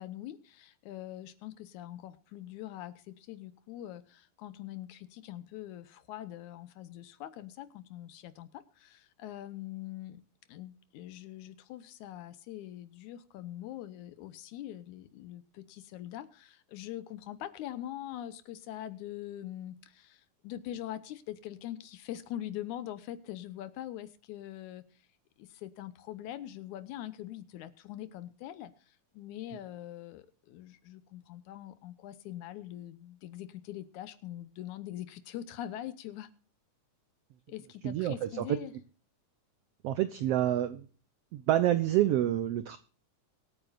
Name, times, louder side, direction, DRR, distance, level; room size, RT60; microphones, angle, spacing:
voice 1, 0.0-10.2 10.5-24.8 25.4-28.7 29.1-36.3 37.5-38.7, left 12 dB, 80° left, 12 dB, 2.2 m, -43 dB
voice 2, 37.8-38.6 39.8-40.9 41.3-42.8, right 13 dB, 90° right, 12 dB, 1.3 m, -28 dB
24.0 x 8.8 x 2.5 m, 0.39 s
omnidirectional pair, 3.6 m